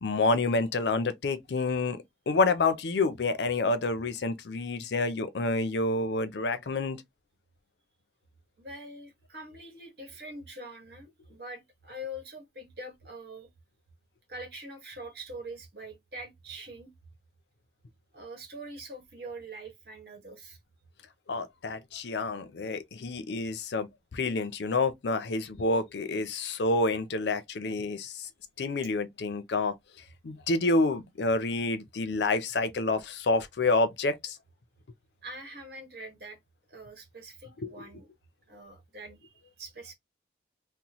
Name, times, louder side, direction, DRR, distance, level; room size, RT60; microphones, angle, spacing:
voice 1, 0.0-7.0 21.3-28.3 28.6-29.7 30.2-34.4 37.6-37.8, left 3 dB, 70° left, 0.5 m, -28 dB
voice 2, 8.6-13.5 14.3-16.9 18.1-20.6 35.2-36.4 36.7-38.1 38.5-39.9, right 1 dB, 60° right, 1.3 m, -44 dB
3.0 x 2.0 x 4.0 m
head